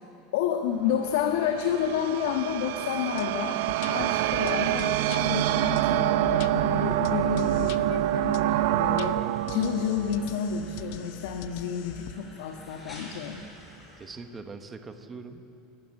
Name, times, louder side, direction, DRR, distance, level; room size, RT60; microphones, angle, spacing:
voice 1, 0.3-13.4, left 8 dB, 75° left, 5 dB, 1.5 m, -30 dB
sound 1, 0.7-14.1, left 1 dB, 10° left, 5.7 m, -52 dB
sound 2, 0.8-11.2, right 14 dB, 70° right, 0.8 m, -27 dB
sound 3, 3.2-3.3 3.7-5.2 5.8-7.8 8.3-8.4 8.8-12.1, left 13 dB, 60° left, 0.8 m, -43 dB
voice 2, 14.0-15.4, right 4 dB, 15° right, 7 dB, 1.3 m, -42 dB
29.0 x 15.5 x 9.9 m, 2.9 s
supercardioid pair, 165°, 0 cm